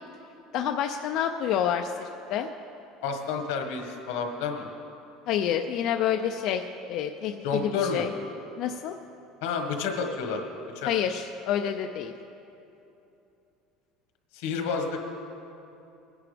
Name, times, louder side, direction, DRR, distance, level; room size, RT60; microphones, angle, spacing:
voice 1, 0.5-2.5 5.3-6.6 6.9-8.1 8.6-9.0 10.9-12.1, left 9 dB, 50° left, 5 dB, 0.4 m, -28 dB
voice 2, 3.0-4.7 7.4-8.0 9.4-10.4 10.7-10.9 14.3-15.0, left 5 dB, 85° left, 4 dB, 1.5 m, -30 dB
20.5 x 10.5 x 3.4 m, 2.8 s
cardioid pair, 165°, 0 cm